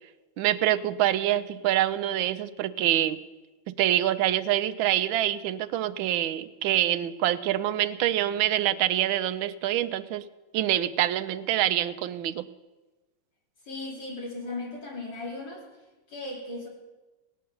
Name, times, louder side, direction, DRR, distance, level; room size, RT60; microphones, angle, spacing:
voice 1, 0.4-3.2 3.7-10.2 10.5-12.5, right 12 dB, 80° right, 12 dB, 1.4 m, -26 dB
voice 2, 13.7-15.6 16.1-16.7, left 2 dB, 60° left, -3 dB, 3.3 m, -36 dB
18.0 x 9.4 x 6.9 m, 1.2 s
omnidirectional pair, 2.2 m